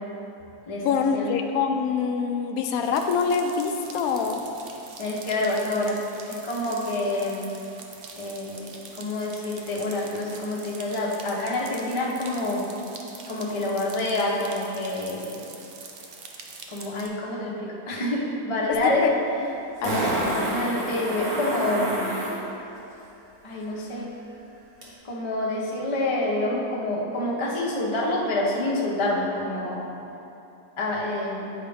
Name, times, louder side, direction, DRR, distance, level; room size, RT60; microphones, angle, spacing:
voice 1, 0.8-4.4 18.7-19.1 19.8-20.3, left 6 dB, 70° left, 5 dB, 1.0 m, -25 dB
sound 1, 2.8-17.1, right 4 dB, 85° right, 0.5 m, -44 dB
voice 2, 5.0-6.0 6.3-7.5 8.2-8.7 8.9-12.6 13.3-15.4 16.7-19.0 20.5-22.3 23.4-24.1 25.0-29.9 30.8-31.5, left 2 dB, 25° left, -5 dB, 0.7 m, -27 dB
Fart, 18.7-18.8 19.8-22.4 24.8-24.9, right 1 dB, 35° right, 1.5 m, -27 dB
9.1 x 4.7 x 3.5 m, 2.9 s
omnidirectional pair, 1.8 m